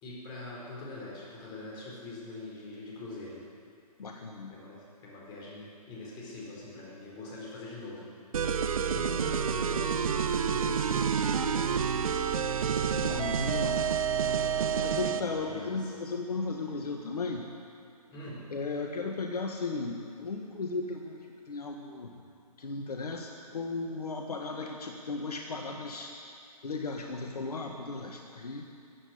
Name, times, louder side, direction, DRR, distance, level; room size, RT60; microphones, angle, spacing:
voice 1, 0.0-3.4 4.5-8.1 8.9-12.0 14.2-16.0 18.1-18.5 22.1-22.2, left 2 dB, 20° left, -4 dB, 4.5 m, -43 dB
voice 2, 4.0-4.5 12.9-13.9 14.8-17.5 18.5-21.2 21.5-22.1 22.6-26.1 26.6-28.6, left 3 dB, 70° left, 2 dB, 1.5 m, -35 dB
sound 1, 8.3-15.3, right 7 dB, 60° right, 0.9 m, -29 dB
15.0 x 8.5 x 9.5 m, 2.4 s
figure-of-eight pair, 140°, 20 cm